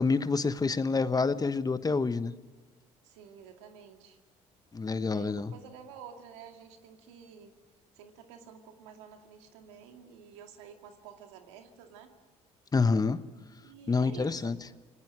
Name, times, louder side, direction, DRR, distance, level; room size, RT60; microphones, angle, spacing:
voice 1, 0.0-2.3 4.7-5.5 12.7-13.2 13.9-14.6, left 4 dB, 25° left, 12 dB, 1.2 m, -27 dB
voice 2, 3.0-4.2 5.1-7.6 8.0-12.1 13.6-14.5, right 7 dB, 90° right, 5 dB, 2.2 m, -50 dB
29.0 x 19.5 x 6.2 m, 1.3 s
supercardioid pair, 70°, 15 cm